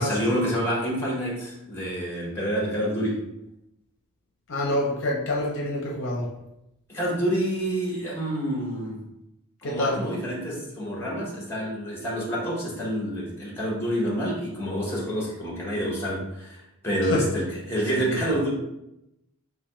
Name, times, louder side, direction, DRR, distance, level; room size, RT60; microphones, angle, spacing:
voice 1, 0.0-3.2 6.9-9.0 9.6-18.5, equal, 10° left, -4 dB, 0.9 m, -28 dB
voice 2, 4.5-6.3 9.6-10.0 17.1-17.2, left 1 dB, 55° left, -2 dB, 0.6 m, -26 dB
3.3 x 2.2 x 4.2 m, 0.86 s
head